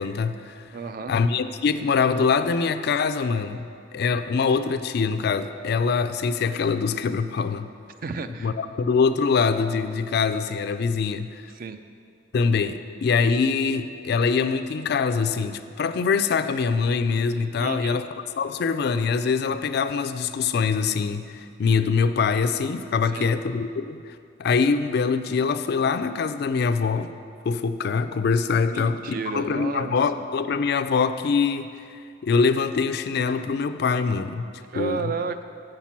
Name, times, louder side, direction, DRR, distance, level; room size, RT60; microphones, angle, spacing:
voice 1, 0.0-0.7 1.1-7.7 8.4-11.4 12.3-18.1 18.4-27.1 27.4-29.0 29.3-31.7 32.2-34.5 34.7-35.1, left 5 dB, 55° left, 11 dB, 0.3 m, -24 dB
voice 2, 0.7-1.1 8.0-8.5 11.5-11.8 17.6-18.0 23.1-23.3 28.7-30.0 34.7-35.4, right 5 dB, 45° right, 10 dB, 0.4 m, -32 dB
6.6 x 5.8 x 7.3 m, 2.3 s
head